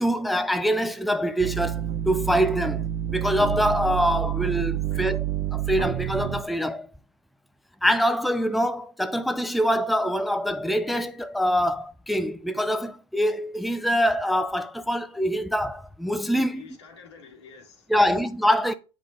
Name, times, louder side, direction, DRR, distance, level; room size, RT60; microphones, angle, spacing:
voice 1, 0.0-2.8 3.1-5.2 5.5-6.9 7.8-16.6 17.9-18.7, equal, ahead, 0.5 m, -24 dB
sound 1, 1.4-6.4, right 12 dB, 40° right, 0.8 m, -28 dB
voice 2, 4.9-5.3 16.5-18.2, left 5 dB, 85° left, 2.2 m, -48 dB
8.3 x 5.1 x 3.9 m
hypercardioid pair, 100°, 14 cm